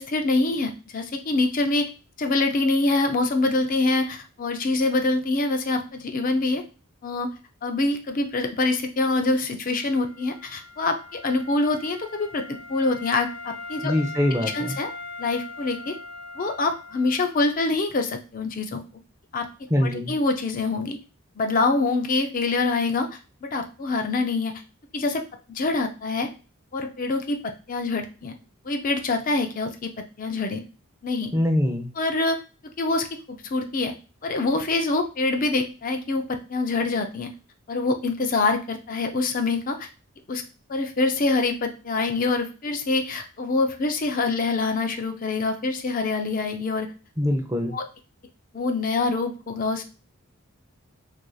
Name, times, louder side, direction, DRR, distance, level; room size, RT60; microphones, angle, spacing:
voice 1, 0.0-1.9 2.2-6.6 7.0-7.3 7.6-13.9 14.5-14.9 15.2-16.0 16.4-18.8 19.3-19.5 19.9-21.0 21.4-23.1 23.4-24.6 24.9-25.2 25.5-26.3 26.7-28.3 28.6-30.6 31.0-31.3 32.0-32.4 32.8-33.9 34.2-37.3 37.7-39.9 40.3-40.4 40.7-46.9 47.7-47.8 48.5-49.8, left 3 dB, 35° left, 6 dB, 0.4 m, -25 dB
Wind instrument woodwind instrument, 9.8-17.6, left 3 dB, 45° right, 1.0 m, -40 dB
voice 2, 13.8-14.8 19.7-20.1 31.3-31.9 47.2-47.8, left 1 dB, 15° right, 3 dB, 0.6 m, -23 dB
4.6 x 2.6 x 2.3 m, 0.34 s
head